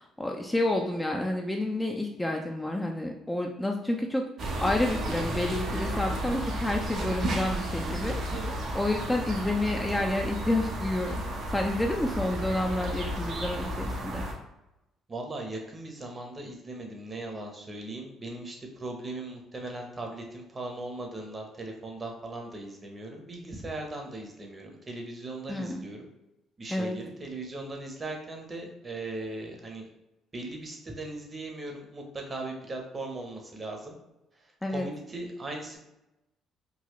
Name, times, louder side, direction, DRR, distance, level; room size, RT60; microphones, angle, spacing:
voice 1, 0.0-8.2 8.7-11.2 11.5-14.2 25.5-25.8 26.7-27.0 34.6-34.9, left 1 dB, 10° left, 1 dB, 0.4 m, -29 dB
sound 1, 4.4-14.3, right 1 dB, 60° right, 0.8 m, -33 dB
voice 2, 15.1-26.1 26.6-29.9 30.3-33.9 34.7-35.8, right 2 dB, 30° right, 2 dB, 0.9 m, -38 dB
3.9 x 2.3 x 3.0 m, 0.94 s
supercardioid pair, 70°, 0 cm